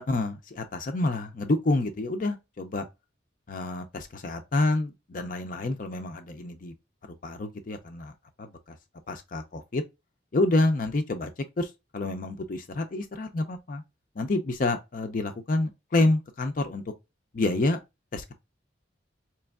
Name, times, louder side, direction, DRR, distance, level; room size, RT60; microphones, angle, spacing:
voice 1, 0.1-2.9 3.5-6.7 7.2-8.1 8.4-8.8 9.1-9.8 10.3-11.3 11.6-13.8 14.2-16.8 17.3-17.8 18.1-18.3, left 2 dB, 45° left, 0.5 m, -28 dB
4.2 x 3.0 x 2.3 m
head